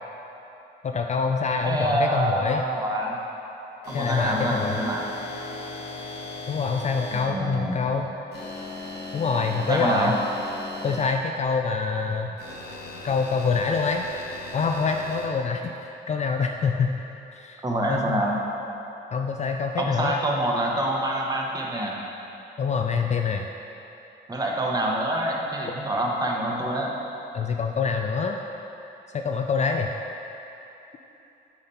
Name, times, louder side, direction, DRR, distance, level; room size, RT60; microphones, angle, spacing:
voice 1, 0.8-2.6 3.9-4.8 6.5-8.1 9.1-10.1 10.8-12.3 13.0-14.0 14.5-17.0 17.3-17.6 17.9-18.2 19.1-20.2 22.6-23.5 27.3-28.4 29.1-29.9, left 5 dB, 35° left, 3 dB, 0.4 m, -25 dB
voice 2, 1.6-3.2 3.9-5.1 7.1-7.8 9.6-10.1 17.6-18.4 19.8-22.0 24.3-26.9, right 1 dB, 20° right, -2 dB, 1.1 m, -26 dB
sound 1, 3.8-7.2 8.3-11.1 12.4-15.3, left 2 dB, 55° left, 1.3 m, -37 dB
8.8 x 4.1 x 4.2 m, 3.0 s
cardioid pair, 90°, 20 cm